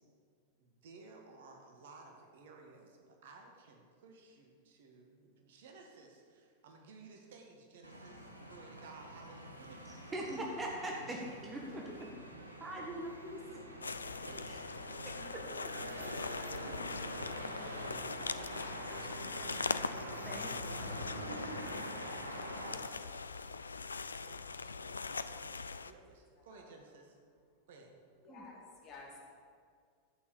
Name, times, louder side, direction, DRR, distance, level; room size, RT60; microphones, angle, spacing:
voice 1, 0.6-10.0 20.9-22.1 22.6-23.3 24.2-27.2 27.7-28.0, right 3 dB, 55° right, 2 dB, 2.0 m, -56 dB
sound 1, 7.8-22.7, equal, 85° right, 1.3 m, -45 dB
voice 2, 10.1-12.1 12.6-13.4 14.5-14.6 15.0-15.4 17.6-17.9 18.6-18.8 20.3-20.5 20.8-21.0 28.3-28.4, right 1 dB, 15° right, -1 dB, 1.7 m, -42 dB
sound 2, 13.8-25.9, left 4 dB, 75° left, 0.4 m, -41 dB
voice 3, 28.2-29.2, left 3 dB, 35° left, -3 dB, 3.6 m, -52 dB
12.5 x 8.8 x 7.1 m, 2.1 s
figure-of-eight pair, 90°, 0 cm